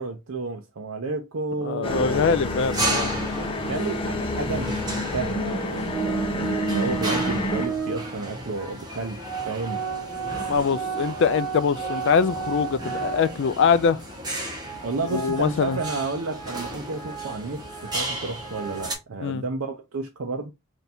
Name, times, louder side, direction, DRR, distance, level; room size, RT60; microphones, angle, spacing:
voice 1, 0.0-2.2 3.6-9.8 14.8-20.5, right 3 dB, 75° right, 0.6 m, -31 dB
voice 2, 1.6-3.1 10.5-14.0 15.1-15.8 19.2-19.4, left 6 dB, 60° left, 0.4 m, -23 dB
sound 1, 1.8-7.7, left 1 dB, 25° left, 0.8 m, -28 dB
sound 2, 2.1-18.9, right 1 dB, 20° right, 1.1 m, -35 dB
Organ, 5.9-8.2 8.9-9.0 9.2-13.6 14.0-14.1 14.6-19.0, right 7 dB, ahead, 1.8 m, -33 dB
3.4 x 2.7 x 4.2 m
head